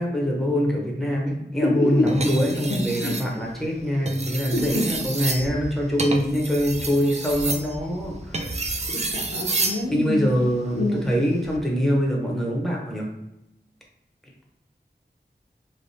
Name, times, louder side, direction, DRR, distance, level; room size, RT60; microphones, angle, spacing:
voice 1, 0.0-8.5 9.9-13.1, equal, ahead, -2 dB, 0.8 m, -24 dB
voice 2, 1.6-2.1 2.7-3.2 4.5-4.9 8.9-10.3 10.7-11.0, left 1 dB, 70° left, -2 dB, 0.7 m, -25 dB
sound 1, 2.1-3.3 3.9-9.8 11.3-11.6, right 3 dB, 40° right, 0.4 m, -29 dB
3.2 x 2.2 x 2.7 m, 0.90 s
wide cardioid pair, 45°, 18 cm